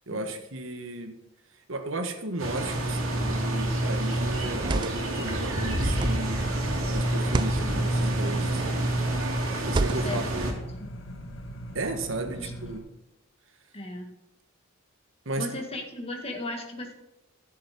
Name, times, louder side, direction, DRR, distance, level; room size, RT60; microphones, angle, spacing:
voice 1, 0.1-1.2 1.7-6.5 6.9-8.9 9.7-10.6 11.7-12.8 15.2-15.5, right 2 dB, 70° right, 7 dB, 1.4 m, -34 dB
sound 1, 2.4-10.5, right 1 dB, 85° right, 2.5 m, -28 dB
sound 2, 3.3-3.6 4.4-5.2 6.0-6.3 7.2-7.6 8.5-8.9 9.7-10.3, right 3 dB, 20° right, 0.3 m, -31 dB
sound 3, 6.4-12.8, equal, 65° left, 1.6 m, -41 dB
voice 2, 9.9-10.9 12.3-12.5 13.7-14.2 15.4-16.9, left 2 dB, 30° left, 1 dB, 2.0 m, -37 dB
12.5 x 7.1 x 5.3 m, 0.97 s
head